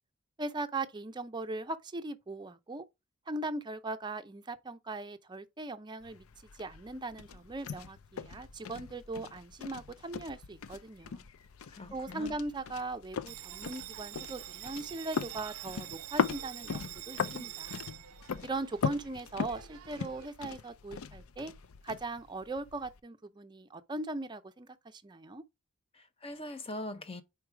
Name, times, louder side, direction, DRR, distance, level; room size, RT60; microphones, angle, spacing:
voice 1, 0.4-2.8 3.3-6.2 6.5-11.2 11.9-17.8 18.4-21.5 21.8-25.4, right 2 dB, 20° right, 0.5 m, -39 dB
sound 1, 6.0-23.0, left 6 dB, 70° left, 0.4 m, -40 dB
voice 2, 11.7-12.3 25.9-27.2, left 1 dB, 25° left, 0.6 m, -42 dB
Bell, 13.3-20.3, right 14 dB, 85° right, 0.5 m, -46 dB
4.7 x 4.5 x 4.8 m
head